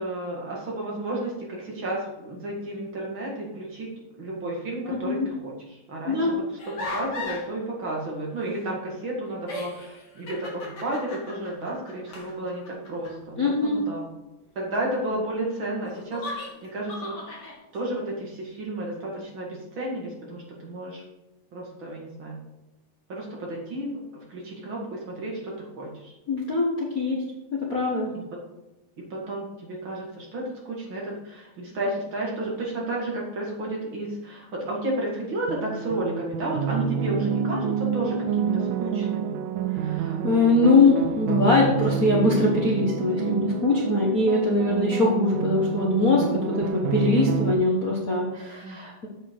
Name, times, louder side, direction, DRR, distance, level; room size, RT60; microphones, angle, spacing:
voice 1, 0.0-3.9 4.2-14.1 14.6-17.5 17.7-21.0 21.5-22.4 23.1-26.1 28.1-28.2 29.1-39.4 48.6-48.8, right 1 dB, 40° right, -2 dB, 2.3 m, -32 dB
voice 2, 4.9-5.3 6.0-6.3 13.4-13.8 26.3-27.2 27.5-28.1 39.7-49.1, left 2 dB, 85° left, -4 dB, 0.7 m, -22 dB
sound 1, 6.6-7.5 8.9-9.0 9.4-13.1 15.8-17.6, left 2 dB, 35° left, 2.4 m, -37 dB
sound 2, 35.5-47.5, right 6 dB, 80° right, 2.4 m, -28 dB
8.1 x 8.0 x 4.6 m, 1.0 s
omnidirectional pair, 4.2 m